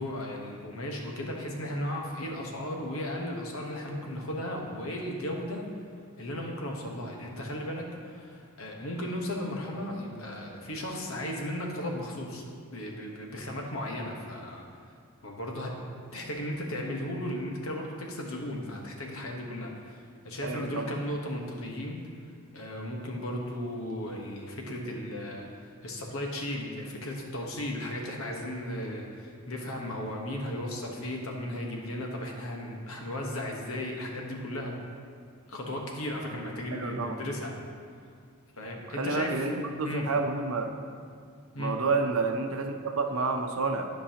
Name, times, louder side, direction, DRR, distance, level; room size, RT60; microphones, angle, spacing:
voice 1, 0.0-5.6 6.2-12.4 12.7-14.6 15.2-15.7 16.1-22.0 22.5-25.5 25.8-34.7 35.5-37.5 38.6-39.3 39.8-40.1 41.5-41.8, left 1 dB, 75° left, 0 dB, 1.2 m, -35 dB
voice 2, 20.4-20.9 36.7-37.2 39.0-40.7 41.6-43.9, right 3 dB, 75° right, 5 dB, 0.7 m, -29 dB
13.0 x 5.4 x 2.9 m, 2.2 s
head